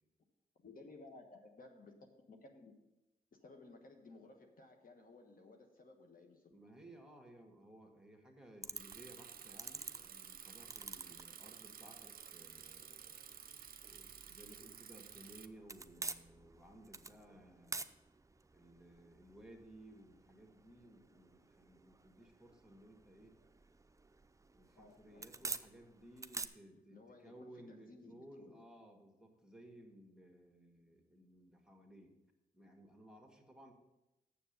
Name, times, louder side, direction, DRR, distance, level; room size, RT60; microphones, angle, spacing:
voice 1, 0.6-2.8 3.3-6.5 24.8-25.3 26.9-28.6, left 3 dB, 60° left, 4 dB, 1.3 m, -58 dB
voice 2, 6.5-13.2 13.9-17.9 18.5-23.4 24.5-32.1 32.5-33.7, right 1 dB, 5° right, 3 dB, 1.9 m, -59 dB
sound 1, 8.6-26.5, right 3 dB, 20° right, 0.5 m, -51 dB
Bicycle, 8.8-15.5, right 8 dB, 60° right, 0.6 m, -53 dB
7.1 x 7.0 x 6.8 m, 0.97 s
cardioid pair, 55°, 16 cm